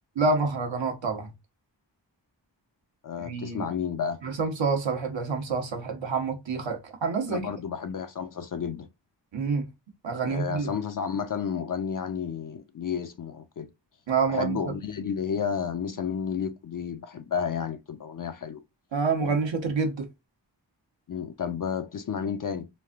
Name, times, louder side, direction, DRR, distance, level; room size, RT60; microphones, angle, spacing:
voice 1, 0.2-1.3 3.2-3.7 4.2-7.5 9.3-9.7 10.0-10.7 14.1-14.7 18.9-20.1, right 4 dB, 80° right, 1.1 m, -27 dB
voice 2, 3.0-4.2 7.3-8.9 10.3-13.7 14.3-18.6 19.2-19.4 21.1-22.7, left 7 dB, 50° left, 0.5 m, -31 dB
3.2 x 2.5 x 2.3 m
cardioid pair, 55°, 45 cm